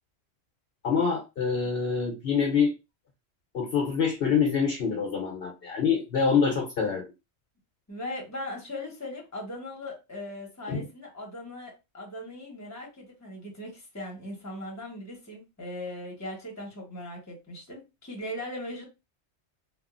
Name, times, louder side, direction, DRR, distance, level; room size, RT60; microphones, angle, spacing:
voice 1, 0.8-2.7 3.5-7.0 10.7-10.8, left 6 dB, 65° left, 0.8 m, -25 dB
voice 2, 7.9-18.9, left 1 dB, 15° left, 1.0 m, -39 dB
2.9 x 2.4 x 2.4 m
omnidirectional pair, 1.1 m